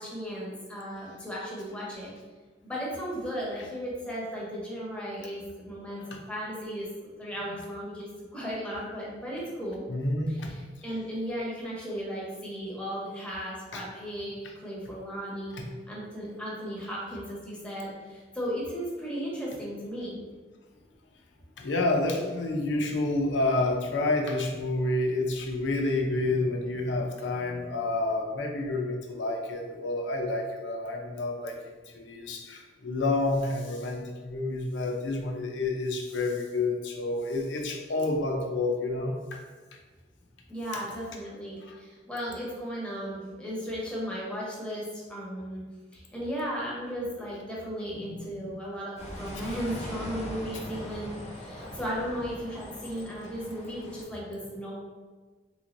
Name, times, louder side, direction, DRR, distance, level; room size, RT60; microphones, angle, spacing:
voice 1, 0.0-2.1 2.6-6.9 7.2-9.8 10.3-20.2 40.5-45.6 45.9-54.7, equal, 5° left, -5 dB, 0.8 m, -36 dB
voice 2, 9.9-10.5 13.7-13.8 15.5-15.6 21.6-39.4 41.6-41.8 48.1-48.5 49.3-49.5 51.5-51.7, left 2 dB, 80° left, 2 dB, 0.6 m, -29 dB
sound 1, 49.0-54.0, left 1 dB, 35° left, 0.7 m, -41 dB
3.5 x 3.1 x 2.5 m, 1.4 s
head